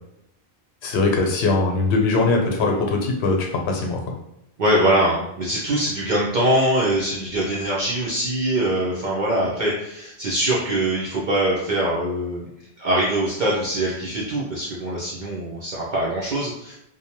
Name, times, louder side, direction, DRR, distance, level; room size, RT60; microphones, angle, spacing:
voice 1, 0.8-4.0, left 3 dB, 90° left, 1 dB, 0.9 m, -21 dB
voice 2, 4.6-12.5 12.8-16.7, right 1 dB, 55° right, -6 dB, 0.6 m, -23 dB
2.6 x 2.0 x 2.9 m, 0.83 s
omnidirectional pair, 1.1 m